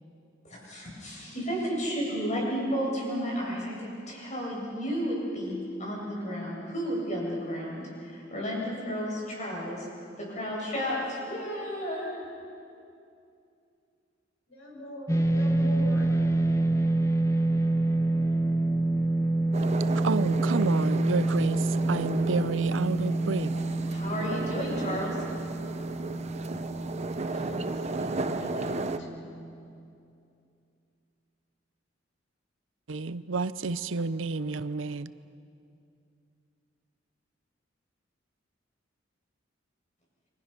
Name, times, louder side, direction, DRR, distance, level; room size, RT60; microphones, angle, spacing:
voice 1, 0.5-5.5 5.8-9.9 10.2-12.2 23.9-25.2, equal, 40° left, -3 dB, 7.8 m, -32 dB
voice 2, 14.5-16.1 27.1-29.1, equal, 75° left, -1 dB, 6.2 m, -42 dB
sound 1, 15.1-29.5, right 2 dB, 15° left, 0.9 m, -27 dB
sound 2, 19.5-29.0, right 3 dB, 35° right, 0.9 m, -35 dB
voice 3, 19.9-23.6 32.9-35.1, right 3 dB, 80° right, 15 dB, 0.7 m, -30 dB
29.5 x 24.0 x 6.0 m, 2.5 s
head